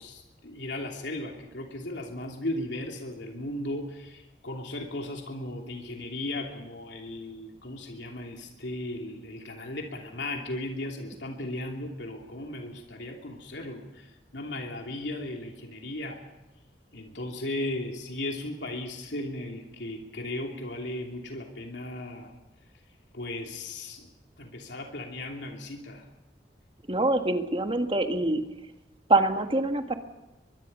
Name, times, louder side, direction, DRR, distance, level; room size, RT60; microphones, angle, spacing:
voice 1, 0.0-16.2 16.9-22.4 23.1-24.1 24.4-26.1, left 1 dB, 85° left, 1 dB, 2.9 m, -36 dB
voice 2, 26.9-28.4 29.1-30.0, right 2 dB, 30° right, 6 dB, 1.6 m, -24 dB
23.0 x 23.0 x 5.5 m, 1.0 s
head